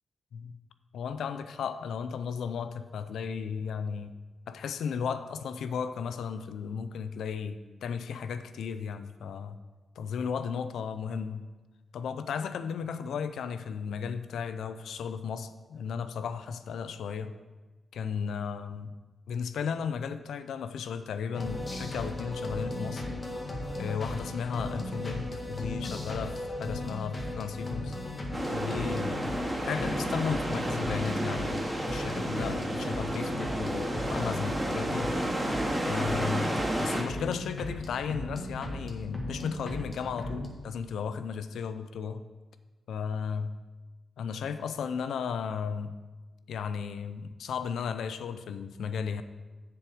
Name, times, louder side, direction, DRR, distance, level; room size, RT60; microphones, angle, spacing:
voice 1, 0.9-4.1 4.5-9.6 10.0-11.5 11.9-17.3 17.9-18.9 19.3-23.1 23.8-27.9 28.5-29.3 29.6-35.1 35.9-36.5 36.8-42.2 42.9-43.6 44.2-45.9 46.5-49.2, left 6 dB, 90° left, 11 dB, 0.5 m, -35 dB
sound 1, 21.3-40.5, left 1 dB, 35° left, 1.7 m, -37 dB
sound 2, 28.3-37.0, right 1 dB, 20° right, 2.1 m, -32 dB
7.7 x 6.9 x 4.9 m, 1.3 s
cardioid pair, 70°, 0 cm